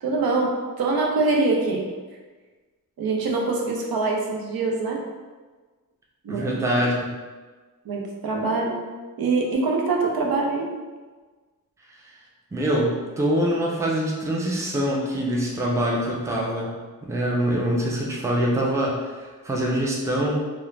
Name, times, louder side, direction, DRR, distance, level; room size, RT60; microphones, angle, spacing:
voice 1, 0.0-1.8 3.0-5.0 6.2-6.5 7.9-8.8 9.2-10.7, right 3 dB, 90° right, 0 dB, 0.5 m, -24 dB
voice 2, 6.3-7.1 12.5-20.4, right 1 dB, 10° right, -3 dB, 0.4 m, -24 dB
2.4 x 2.0 x 3.0 m, 1.3 s
wide cardioid pair, 120°, 35 cm